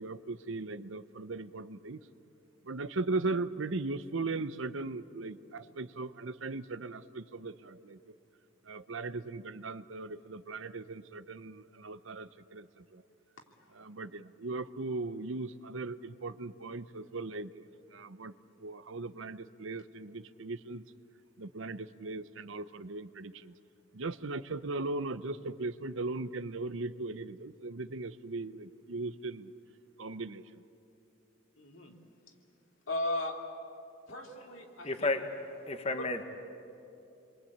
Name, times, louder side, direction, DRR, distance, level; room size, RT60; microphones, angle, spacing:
voice 1, 0.0-2.0 2.7-8.0 8.7-12.7 12.9-13.0 13.7-17.5 17.9-18.3 18.6-20.8 21.4-23.5 23.9-29.5 30.0-30.4, right 3 dB, 70° right, 14 dB, 0.8 m, -38 dB
voice 2, 31.6-31.9 32.9-33.4 34.1-35.1, left 1 dB, 75° left, 2 dB, 2.9 m, -36 dB
voice 3, 34.8-35.3 35.7-36.2, left 3 dB, 30° left, 7 dB, 1.2 m, -31 dB
28.5 x 23.0 x 8.7 m, 2.8 s
head